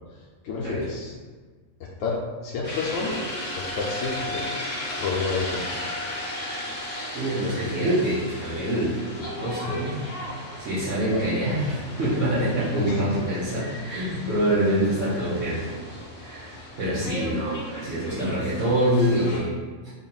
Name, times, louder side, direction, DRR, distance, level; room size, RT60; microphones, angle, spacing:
voice 1, 0.4-1.1 1.8-3.2 3.5-4.5 5.0-5.6 11.1-11.2 12.9-13.2 16.9-17.0, left 4 dB, 75° left, -3 dB, 0.9 m, -30 dB
sound 1, 2.6-19.4, left 1 dB, 35° left, 0.6 m, -36 dB
voice 2, 7.1-10.0 10.6-15.7 16.2-19.5, right 1 dB, 65° right, -10 dB, 1.3 m, -25 dB
3.8 x 2.2 x 3.9 m, 1.5 s
omnidirectional pair, 1.4 m